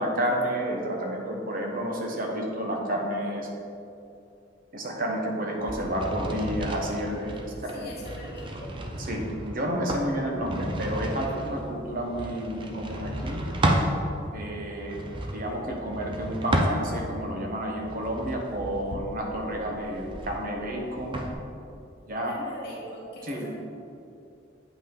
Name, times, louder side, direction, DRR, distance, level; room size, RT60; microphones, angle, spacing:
voice 1, 0.0-3.5 4.7-7.4 7.6-7.9 9.0-13.4 13.7-13.9 14.3-15.0 15.3-21.2 22.1-22.4 23.2-23.5, equal, 50° right, 0 dB, 1.2 m, -30 dB
sound 1, 5.6-13.9 14.7-17.2 17.7-21.3, right 1 dB, 25° right, 0.6 m, -32 dB
voice 2, 7.7-8.8 22.2-23.6, equal, 55° left, -3 dB, 1.8 m, -41 dB
8.6 x 5.6 x 3.8 m, 2.6 s
head